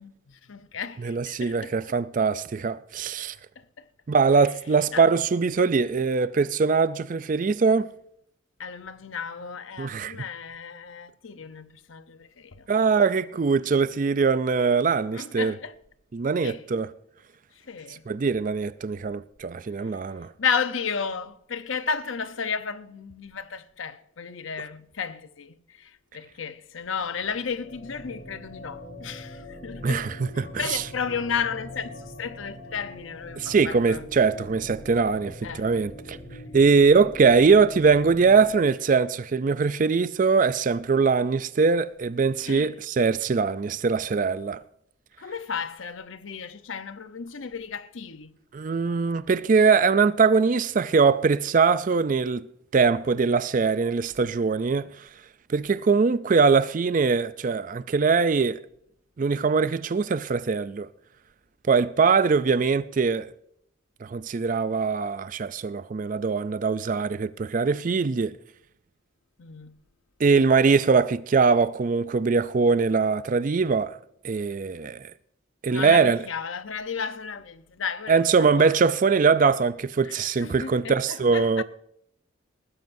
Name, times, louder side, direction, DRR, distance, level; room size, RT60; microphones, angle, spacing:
voice 1, 0.0-1.8 3.6-3.8 4.9-5.1 8.6-12.7 15.1-15.7 16.4-16.6 17.6-18.1 20.4-34.1 35.4-35.6 36.6-36.7 42.5-42.7 45.2-48.4 69.4-69.8 75.7-78.8 80.0-81.6, left 6 dB, 85° left, 0.8 m, -33 dB
voice 2, 1.0-3.4 4.1-7.9 9.8-10.2 12.7-15.5 16.1-16.9 17.9-20.3 29.8-30.8 33.4-36.2 36.5-44.6 48.5-52.5 52.7-55.1 55.5-58.6 59.2-60.9 61.7-63.3 64.0-68.4 70.2-74.0 74.2-75.1 75.6-76.2 78.1-81.6, right 5 dB, 40° right, 0.4 m, -22 dB
sound 1, 27.1-38.5, left 1 dB, 65° left, 3.8 m, -42 dB
20.0 x 14.5 x 2.6 m
head